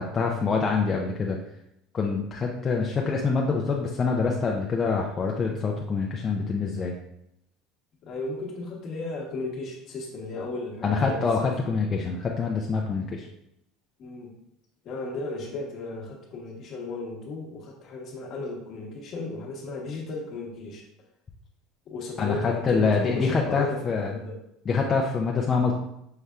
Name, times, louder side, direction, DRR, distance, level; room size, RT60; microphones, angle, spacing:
voice 1, 0.0-1.4 1.9-7.0 10.8-13.3 22.2-24.1 24.7-25.7, left 4 dB, 25° left, 0 dB, 0.4 m, -25 dB
voice 2, 2.5-2.9 8.0-11.8 14.0-14.3 14.8-20.8 21.9-24.4, left 2 dB, 45° left, 0 dB, 1.1 m, -35 dB
5.4 x 3.3 x 2.4 m, 0.80 s
supercardioid pair, 130°, 0 cm